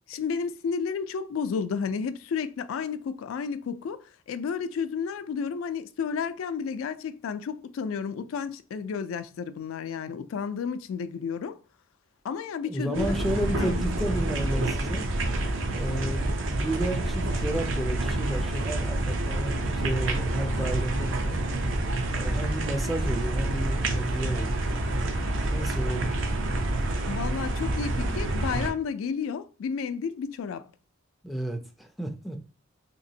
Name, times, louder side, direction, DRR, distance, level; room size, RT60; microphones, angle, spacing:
voice 1, 0.1-11.6 12.2-13.1 13.6-14.0 27.1-30.6, left 6 dB, 90° left, 0.3 m, -32 dB
voice 2, 12.6-15.1 15.7-21.4 22.1-24.7 25.5-26.2 31.2-32.4, right 1 dB, ahead, 0.3 m, -32 dB
sound 1, 12.9-28.7, right 2 dB, 70° right, 0.5 m, -28 dB
3.3 x 2.9 x 2.7 m
head